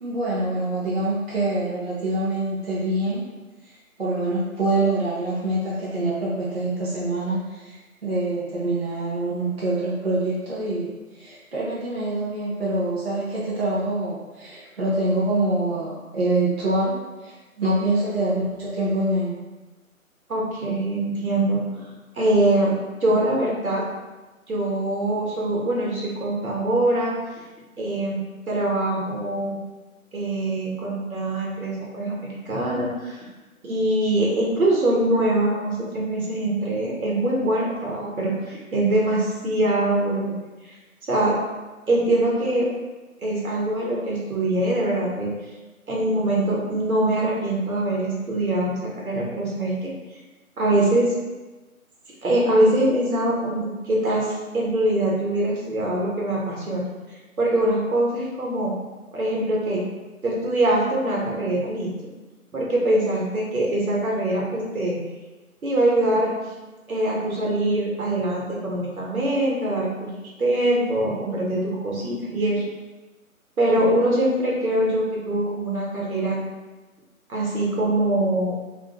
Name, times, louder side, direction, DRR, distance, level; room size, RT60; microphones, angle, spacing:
voice 1, 0.0-3.3 4.0-19.4, right 2 dB, 45° right, -7 dB, 0.5 m, -25 dB
voice 2, 20.3-21.6 22.2-22.7 23.0-23.8 24.5-27.1 27.8-28.2 28.5-29.6 30.1-33.2 33.6-40.4 41.1-41.3 41.9-42.7 43.2-45.3 45.9-49.9 50.6-51.1 52.2-56.9 57.4-58.7 59.1-59.8 60.2-61.9 62.5-65.0 65.6-66.3 66.9-70.1 70.4-72.6 73.6-76.4 77.3-78.6, right 1 dB, 75° right, -4 dB, 0.9 m, -23 dB
2.4 x 2.0 x 2.8 m, 1.2 s
figure-of-eight pair, 150°, 43 cm